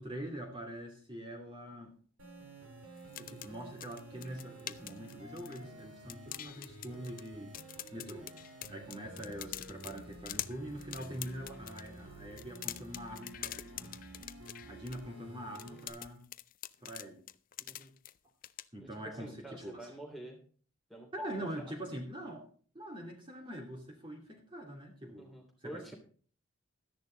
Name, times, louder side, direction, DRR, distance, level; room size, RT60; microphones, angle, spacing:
voice 1, 0.0-1.9 3.2-7.6 7.9-8.2 8.7-14.0 14.7-16.2 16.8-17.2 18.7-19.9 21.1-22.4 22.7-25.3 25.6-25.9, right 1 dB, 25° right, 0 dB, 2.7 m, -44 dB
sound 1, 2.2-15.9, right 1 dB, 75° right, 6.8 m, -51 dB
sound 2, 3.0-5.8 6.1-7.3 7.5-11.9 12.3-15.0 15.5-18.1 18.4-18.6, left 13 dB, 40° left, 0.5 m, -44 dB
voice 2, 17.6-17.9 18.8-20.4 20.9-21.1 21.4-21.8 25.2-25.9, right 1 dB, ahead, 1 dB, 3.0 m, -48 dB
13.0 x 10.5 x 3.9 m, 0.43 s
head